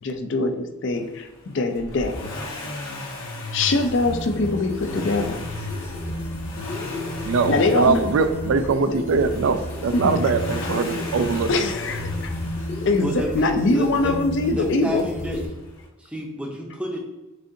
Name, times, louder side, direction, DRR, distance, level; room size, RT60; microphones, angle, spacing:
voice 1, 0.0-2.2 3.5-5.5 7.5-8.0 8.9-9.0 9.9-10.3 10.6-10.7 11.5-12.3 12.8-15.1, left 3 dB, 55° left, 7 dB, 0.4 m, -23 dB
Accelerating revving vroom, 1.8-13.7 15.0-15.1, left 2 dB, 75° left, 0.9 m, -34 dB
sound 1, 3.4-15.5, left 1 dB, 35° left, 0.8 m, -33 dB
voice 2, 7.2-11.7, right 4 dB, 70° right, 10 dB, 0.3 m, -22 dB
voice 3, 13.0-14.2 14.5-15.4 16.0-17.0, equal, 5° right, -1 dB, 0.6 m, -30 dB
6.3 x 2.6 x 2.6 m, 1.1 s
head